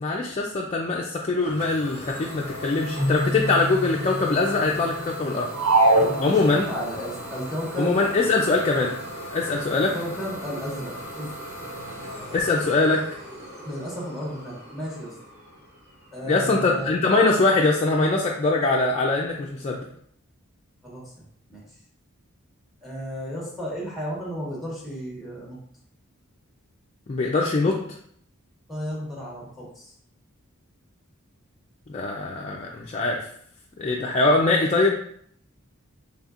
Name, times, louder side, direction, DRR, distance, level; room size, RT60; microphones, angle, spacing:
voice 1, 0.0-5.5 5.9-6.7 7.8-8.9 9.3-9.9 12.3-13.0 16.3-19.9 27.1-27.8 31.9-33.2 33.8-34.9, left 3 dB, 30° left, -2 dB, 0.4 m, -22 dB
Idling / Domestic sounds home sounds, 1.4-16.9, equal, 35° right, 1.5 m, -38 dB
Keyboard (musical), 3.0-5.9, left 2 dB, 50° right, 1.0 m, -31 dB
sound 1, 5.5-7.0, right 2 dB, 75° right, 0.4 m, -21 dB
voice 2, 6.0-8.0 9.7-11.3 13.6-15.2 16.1-16.9 20.8-21.1 21.5-21.6 22.8-25.6 28.7-29.9, equal, ahead, -3 dB, 1.1 m, -33 dB
4.2 x 3.3 x 2.4 m, 0.64 s
head